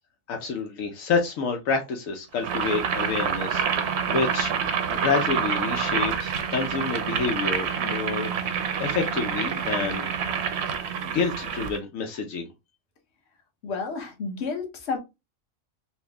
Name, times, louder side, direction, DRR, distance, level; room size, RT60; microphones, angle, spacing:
voice 1, 0.3-4.5 4.9-10.1 11.0-12.5, left 5 dB, 80° left, 1.1 m, -28 dB
Boiling, 2.4-11.8, right 7 dB, 60° right, 0.8 m, -27 dB
voice 2, 13.6-15.0, left 4 dB, 55° left, 1.2 m, -31 dB
4.4 x 2.1 x 3.3 m
omnidirectional pair, 1.4 m